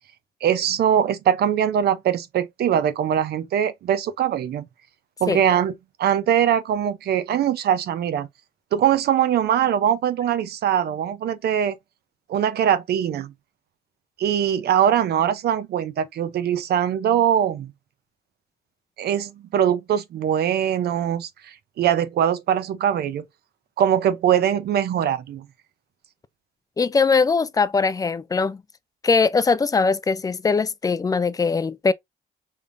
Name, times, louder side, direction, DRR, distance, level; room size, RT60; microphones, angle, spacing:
voice 1, 0.4-4.7 5.2-5.7 6.0-8.3 8.7-11.8 12.3-13.3 14.2-17.7 19.0-23.2 23.8-25.5, right 9 dB, 75° right, 0.7 m, -22 dB
voice 2, 26.8-28.6 29.0-31.9, left 4 dB, 20° left, 0.4 m, -21 dB
5.3 x 3.3 x 2.6 m
cardioid pair, 120°, 17 cm